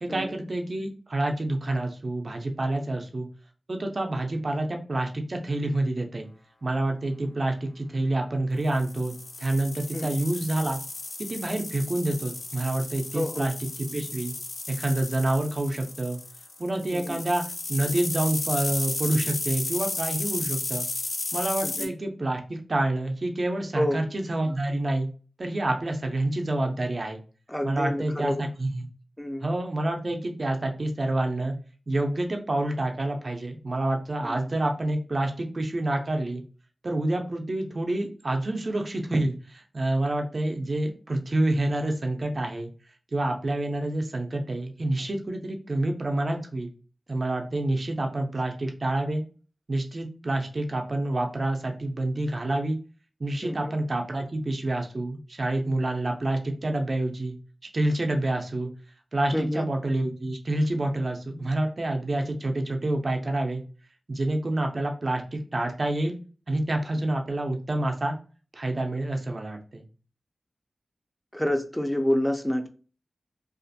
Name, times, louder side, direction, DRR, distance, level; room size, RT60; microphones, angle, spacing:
voice 1, 0.0-3.3 3.7-6.3 6.6-10.8 11.3-13.5 13.9-14.3 14.7-16.2 16.6-17.4 17.7-20.9 21.3-25.1 25.4-27.2 27.6-28.9 29.4-31.6 31.9-36.4 36.8-42.7 43.1-46.7 47.1-49.2 49.7-52.8 53.2-57.4 57.7-58.7 59.1-63.6 64.1-66.2 66.5-68.2 68.5-69.8, right 1 dB, 45° right, 3 dB, 0.5 m, -28 dB
sound 1, 8.7-21.9, left 3 dB, 70° left, 0.5 m, -34 dB
voice 2, 13.1-13.5 16.9-17.2 21.6-21.9 23.7-24.0 27.5-28.4 29.2-29.5 34.2-34.3 53.4-53.7 59.3-59.7 71.3-72.7, equal, 5° left, 6 dB, 0.4 m, -28 dB
2.4 x 2.4 x 2.6 m, 0.37 s
wide cardioid pair, 85°, 0 cm